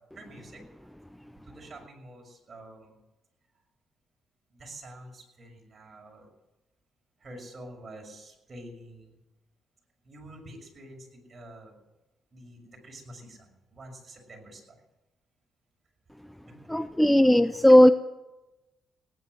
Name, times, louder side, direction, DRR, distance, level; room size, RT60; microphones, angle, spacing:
voice 1, 0.1-0.9 1.4-3.0 4.5-6.3 7.2-9.2 10.0-11.8 12.3-14.8 16.5-16.6 17.4-17.5, right 1 dB, 35° right, 1 dB, 6.4 m, -47 dB
voice 2, 16.7-17.9, equal, 5° left, 12 dB, 0.5 m, -17 dB
17.5 x 10.5 x 7.9 m, 1.0 s
cardioid pair, 90°, 0 cm